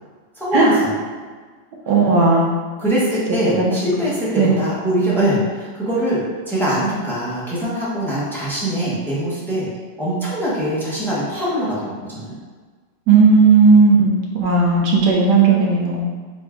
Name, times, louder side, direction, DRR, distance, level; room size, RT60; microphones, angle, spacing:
voice 1, 0.3-0.9 1.9-2.2 2.8-9.7 10.0-12.4, right 1 dB, ahead, -9 dB, 0.5 m, -22 dB
voice 2, 1.9-2.5 3.6-3.8 4.4-4.5 13.1-16.0, right 4 dB, 80° right, -2 dB, 1.3 m, -14 dB
3.9 x 2.2 x 3.5 m, 1.5 s
omnidirectional pair, 1.8 m